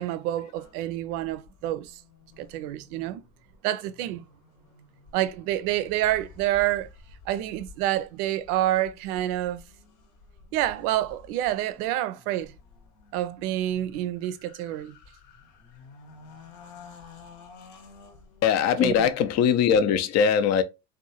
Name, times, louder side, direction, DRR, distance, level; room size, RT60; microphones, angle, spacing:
voice 1, 0.0-1.9 2.4-3.2 3.6-4.2 5.1-6.9 7.3-9.6 10.5-12.5 13.1-14.9 18.8-19.1, right 13 dB, 70° right, 0.5 m, -28 dB
sound 1, 0.5-19.2, left 4 dB, 60° left, 0.9 m, -52 dB
voice 2, 18.4-20.6, left 7 dB, 40° left, 0.4 m, -21 dB
2.6 x 2.3 x 2.7 m
hypercardioid pair, 80°, 45 cm